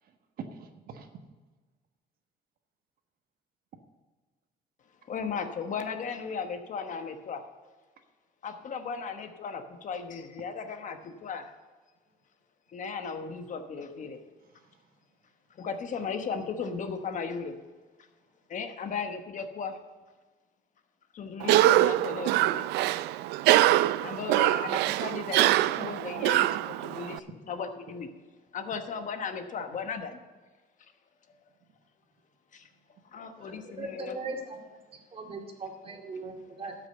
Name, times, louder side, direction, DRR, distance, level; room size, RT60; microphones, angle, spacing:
voice 1, 0.0-1.1 14.4-15.0 31.6-31.7 33.3-33.6, right 6 dB, 60° right, 6 dB, 1.3 m, -47 dB
voice 2, 5.1-7.4 8.4-11.5 12.7-14.2 15.6-17.6 18.5-19.8 21.1-22.7 24.0-28.1 28.5-30.2 32.5-32.7 33.1-34.2, left 5 dB, 50° left, 7 dB, 1.1 m, -36 dB
Cough, 21.4-27.2, right 15 dB, 85° right, 0.4 m, -24 dB
voice 3, 33.4-34.6 35.1-36.8, right 3 dB, 35° right, 3 dB, 2.2 m, -39 dB
12.5 x 6.2 x 7.8 m, 1.3 s
cardioid pair, 110°, 17 cm